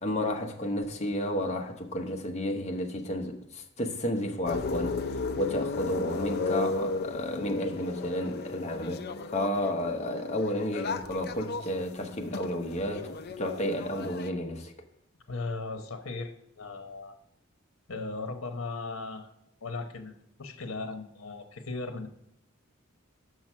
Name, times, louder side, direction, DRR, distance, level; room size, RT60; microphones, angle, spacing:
voice 1, 0.0-14.7, left 1 dB, 35° left, 1.0 m, -32 dB
sound 1, 4.5-14.3, left 3 dB, 50° left, 0.5 m, -35 dB
voice 2, 15.3-17.1 17.9-19.3 19.6-20.1 20.4-22.1, left 3 dB, 85° left, 0.9 m, -37 dB
6.4 x 6.0 x 6.0 m
head